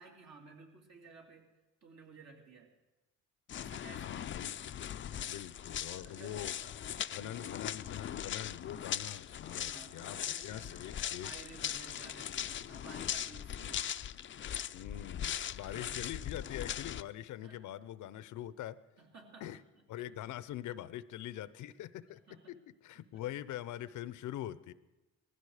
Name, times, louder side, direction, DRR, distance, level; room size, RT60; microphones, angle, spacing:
voice 1, 0.0-1.5 1.8-2.7 3.5-4.3 5.6-6.5 7.2-7.6 9.5-13.9 15.6-16.2 17.4-17.7 19.0-20.3 22.1-22.6 22.9-23.2, right 4 dB, 65° right, 0 dB, 3.3 m, -56 dB
sound 1, 3.5-17.0, left 10 dB, 40° left, 0.5 m, -40 dB
voice 2, 3.9-4.5 5.3-6.5 7.1-11.3 14.7-18.8 19.4-19.6 19.9-22.2 22.5-24.7, left 12 dB, 80° left, 17 dB, 0.7 m, -43 dB
19.0 x 15.5 x 4.9 m, 1.1 s
cardioid pair, 90°, 30 cm